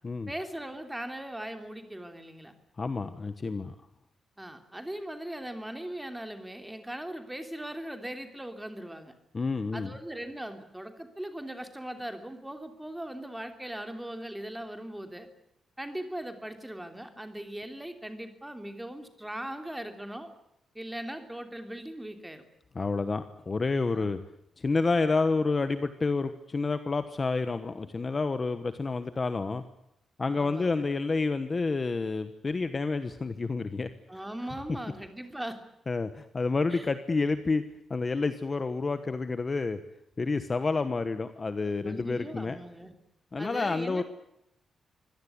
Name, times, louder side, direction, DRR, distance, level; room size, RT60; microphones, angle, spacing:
voice 1, 0.3-2.5 4.4-9.1 9.7-15.3 15.8-20.3 20.7-22.4 23.9-24.1 30.4-30.8 34.1-35.6 36.7-36.9 41.8-42.9 43.4-44.0, right 1 dB, 5° right, 6 dB, 3.0 m, -39 dB
voice 2, 2.8-3.7 9.3-9.9 22.7-24.2 24.6-29.6 30.2-33.9 35.9-37.6 37.9-39.8 40.2-42.6 43.3-44.0, left 3 dB, 25° left, 10 dB, 1.2 m, -29 dB
25.0 x 17.5 x 9.6 m, 0.81 s
wide cardioid pair, 170°, 0 cm